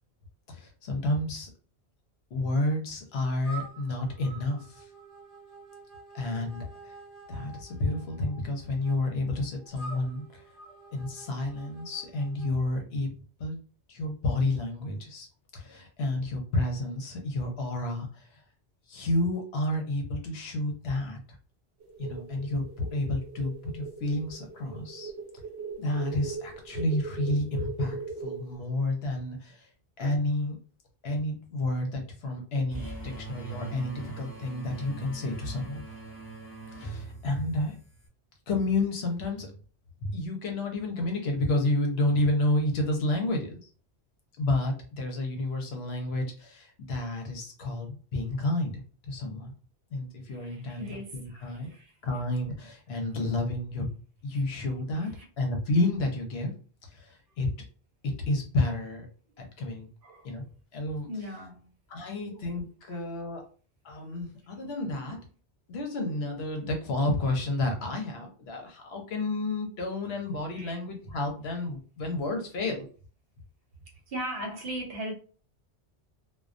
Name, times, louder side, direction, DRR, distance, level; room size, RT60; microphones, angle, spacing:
voice 1, 0.5-1.5 2.3-4.9 6.1-6.9 7.3-10.4 10.9-13.1 13.4-13.6 13.9-15.3 15.5-18.2 18.9-21.2 22.0-25.1 25.8-29.7 30.0-30.6 31.0-35.8 36.8-37.8 38.5-39.6 40.0-43.6 44.4-49.5 49.9-50.9 51.1-51.7 52.0-53.9 54.2-55.1 55.4-56.5 56.9-57.5 58.0-59.1 59.4-59.9 60.2-60.4 60.7-61.1 61.9-63.5 63.8-65.2 65.7-72.9, left 2 dB, 70° left, 0.9 m, -30 dB
sound 1, 3.4-12.6, right 3 dB, 20° right, 1.3 m, -48 dB
sound 2, 21.8-28.5, right 5 dB, 90° right, 0.9 m, -40 dB
sound 3, 32.7-38.1, right 3 dB, 25° left, 0.7 m, -42 dB
voice 2, 50.3-51.9 54.3-54.4 55.1-55.3 60.0-60.4 61.1-61.7 62.1-62.4 62.9-63.0 70.5-70.7 74.1-75.1, equal, 65° right, 0.9 m, -39 dB
2.2 x 2.2 x 2.5 m
omnidirectional pair, 1.1 m